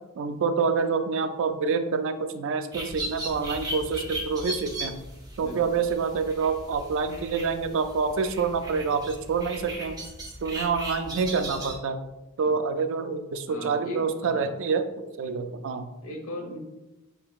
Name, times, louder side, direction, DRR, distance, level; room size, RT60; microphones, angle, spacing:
voice 1, 0.2-5.0 5.4-10.0 10.4-12.0 12.4-15.9, right 5 dB, 65° right, 8 dB, 0.4 m, -27 dB
sound 1, 2.7-11.8, right 1 dB, 20° right, 0.9 m, -37 dB
voice 2, 13.5-14.5 15.2-15.6 16.0-16.6, left 1 dB, 70° left, 2 dB, 1.0 m, -39 dB
6.7 x 2.9 x 2.4 m, 0.98 s
head